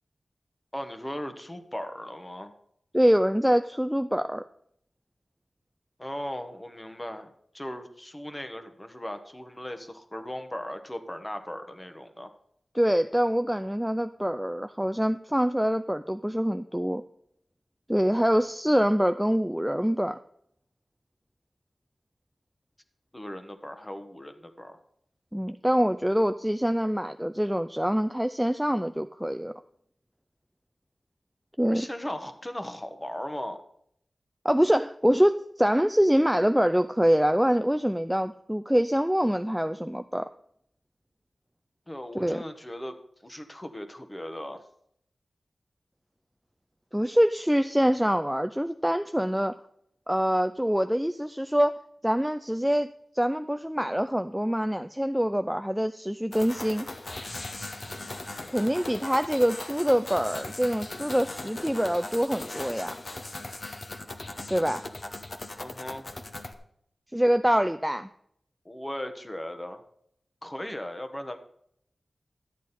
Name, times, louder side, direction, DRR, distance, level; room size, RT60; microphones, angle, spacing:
voice 1, 0.7-2.5 6.0-12.3 23.1-24.8 31.6-33.6 41.9-43.0 43.2-44.6 65.6-66.1 68.6-69.8 70.4-71.4, left 1 dB, 15° left, 8 dB, 1.1 m, -37 dB
voice 2, 2.9-4.4 12.7-17.0 17.9-20.2 25.3-29.5 31.6-31.9 34.4-40.3 42.1-42.4 46.9-49.6 50.1-51.7 52.0-56.9 58.5-62.9 64.5-64.9 67.1-68.1, equal, 5° right, 9 dB, 0.3 m, -25 dB
sound 1, 56.3-66.5, left 2 dB, 50° left, 1.0 m, -39 dB
12.0 x 8.3 x 4.1 m, 0.70 s
wide cardioid pair, 80°, 0 cm